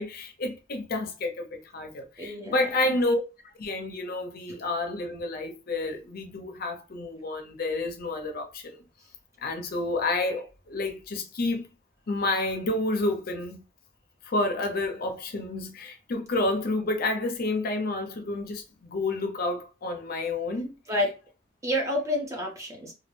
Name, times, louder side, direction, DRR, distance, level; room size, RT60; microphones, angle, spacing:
voice 1, 0.0-3.2 3.6-8.8 9.4-11.7 12.1-13.6 14.2-21.1, left 2 dB, 50° left, 0.5 m, -30 dB
voice 2, 2.2-3.0 4.5-4.6 20.9-21.2 21.6-22.9, left 1 dB, 15° right, 0.6 m, -29 dB
2.2 x 2.1 x 3.0 m
head